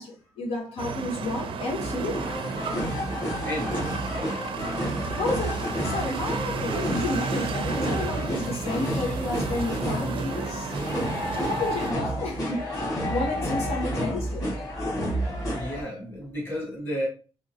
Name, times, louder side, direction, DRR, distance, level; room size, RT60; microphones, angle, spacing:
voice 1, 0.0-2.2 5.2-10.7 11.3-12.8 13.1-14.5, left 2 dB, 85° left, 1.0 m, -31 dB
sound 1, 0.8-11.9, right 4 dB, 65° right, 0.4 m, -33 dB
sound 2, 1.8-15.8, equal, 40° left, 1.7 m, -30 dB
voice 2, 3.4-4.3 10.4-10.5 13.9-14.2 15.5-17.1, equal, 20° left, 1.5 m, -33 dB
3.6 x 3.0 x 2.7 m
wide cardioid pair, 160°, 10 cm